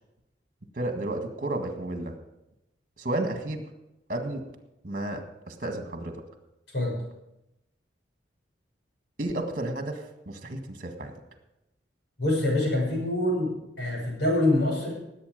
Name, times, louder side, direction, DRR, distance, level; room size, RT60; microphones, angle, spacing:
voice 1, 0.7-2.2 3.0-3.6 4.1-4.4 4.8-6.2 9.2-11.1, right 1 dB, 50° right, 5 dB, 1.8 m, -32 dB
voice 2, 12.2-14.9, left 1 dB, 75° left, -1 dB, 6.0 m, -25 dB
19.0 x 8.5 x 5.2 m, 0.90 s
head